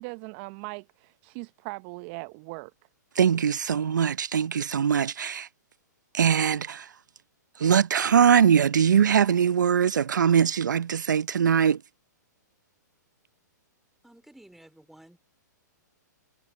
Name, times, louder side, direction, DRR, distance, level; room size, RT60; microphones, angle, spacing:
voice 1, 0.0-2.7, right 28 dB, 40° right, 0.7 m, -39 dB
voice 2, 3.2-5.5 6.1-6.9 7.6-11.8, right 8 dB, 80° right, 0.6 m, -22 dB
voice 3, 14.0-15.2, right 1 dB, ahead, 3.6 m, -52 dB
hypercardioid pair, 120°, 10 cm